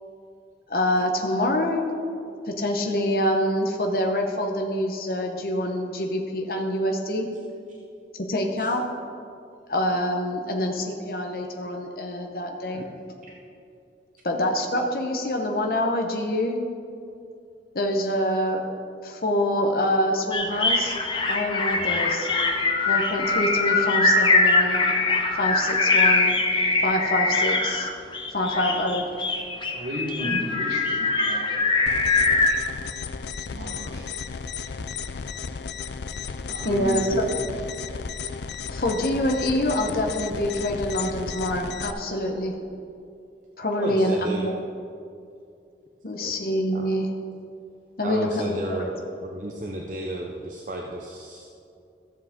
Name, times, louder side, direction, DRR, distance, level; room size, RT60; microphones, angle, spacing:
voice 1, 0.7-1.8 2.5-7.3 8.3-8.8 9.7-12.8 14.2-16.6 17.7-18.6 19.0-21.0 21.3-22.3 22.9-24.8 25.4-26.3 26.8-27.9 28.3-29.1 30.3-30.4 36.6-37.3 38.7-42.6 43.6-44.5 46.0-47.1 48.0-48.9, left 1 dB, 55° left, 2 dB, 0.9 m, -26 dB
sound 1, 20.3-32.6, left 3 dB, 30° left, 0.7 m, -22 dB
voice 2, 29.7-32.1 33.5-34.2 36.5-37.4, equal, 75° right, -1 dB, 1.5 m, -33 dB
sound 2, 31.9-41.9, left 5 dB, 75° left, 0.4 m, -34 dB
voice 3, 33.5-34.0 36.2-36.8 43.8-44.5 46.1-46.3 46.7-46.9 48.0-51.5, right 1 dB, 45° right, 0 dB, 0.6 m, -34 dB
14.0 x 7.3 x 3.7 m, 2.5 s
head